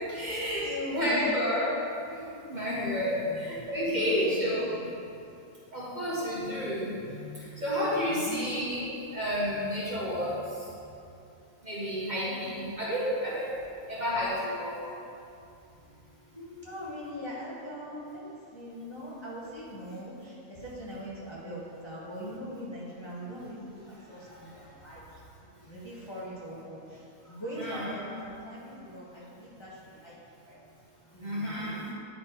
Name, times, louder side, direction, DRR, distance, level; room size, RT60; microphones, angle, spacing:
voice 1, 0.1-0.6 0.9-1.8 2.1-2.2 2.5-4.7 5.7-7.3 7.6-10.4 11.6-13.5 13.9-14.8 27.6-27.9 31.2-31.8, equal, 30° right, -8 dB, 1.4 m, -30 dB
voice 2, 0.6-1.4 3.0-4.9 8.1-8.4 12.3-12.8 16.3-25.2 25.6-30.6 31.1-31.7, equal, 20° left, -8 dB, 1.2 m, -41 dB
9.5 x 4.3 x 4.5 m, 2.6 s
omnidirectional pair, 1.6 m